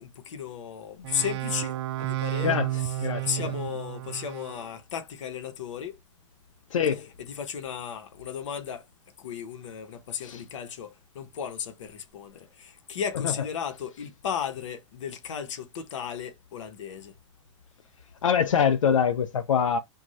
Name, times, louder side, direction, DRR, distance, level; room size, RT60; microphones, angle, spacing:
voice 1, 0.0-2.6 3.2-6.0 7.2-8.9 9.2-17.1, left 8 dB, 70° left, 0.8 m, -35 dB
sound 1, 1.0-4.7, right 15 dB, 55° right, 0.4 m, -32 dB
voice 2, 2.4-3.5 6.7-7.1 10.2-10.4 13.2-13.3 18.2-19.8, left 7 dB, 90° left, 0.4 m, -25 dB
2.6 x 2.3 x 3.0 m
hypercardioid pair, 110°, 16 cm